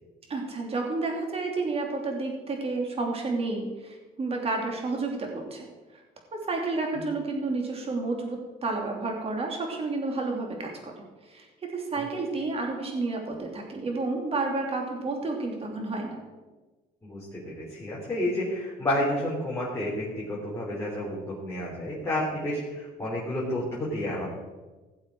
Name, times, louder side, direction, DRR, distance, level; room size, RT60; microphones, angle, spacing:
voice 1, 0.3-5.7 6.3-16.2, right 3 dB, 35° right, 1 dB, 3.1 m, -31 dB
voice 2, 17.0-24.3, left 1 dB, 15° left, -7 dB, 3.8 m, -30 dB
17.0 x 7.3 x 4.8 m, 1.2 s
cardioid pair, 110°, 17 cm